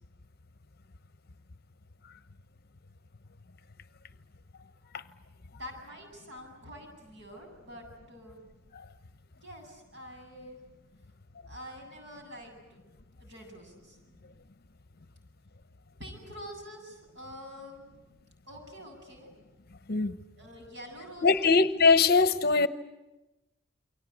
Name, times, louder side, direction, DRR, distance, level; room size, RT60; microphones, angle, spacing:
voice 1, 5.5-8.4 9.3-10.6 11.4-12.8 13.2-14.4 16.0-18.1 18.5-19.3 20.4-21.6, equal, 55° right, 7.9 m, -46 dB
voice 2, 21.2-22.7, left 4 dB, 45° left, 0.9 m, -21 dB
29.0 x 24.0 x 8.2 m
head